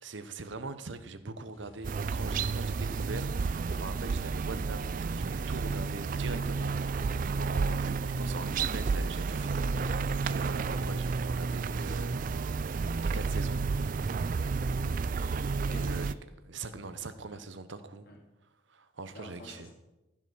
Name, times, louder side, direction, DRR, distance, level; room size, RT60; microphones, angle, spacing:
voice 1, 0.0-7.0 7.4-12.5 13.0-13.7 15.2-15.4 15.7-16.1 16.4-18.0 18.7-19.7, right 3 dB, 60° right, 11 dB, 0.9 m, -42 dB
sound 1, 1.5-11.1, equal, 85° left, 2.7 m, -56 dB
sound 2, 1.8-16.1, right 4 dB, 40° right, 0.3 m, -31 dB
voice 2, 14.8-16.1 17.3-17.4 18.1-18.2 19.1-19.7, left 1 dB, 50° left, -1 dB, 2.8 m, -48 dB
15.0 x 5.9 x 6.1 m, 0.97 s
head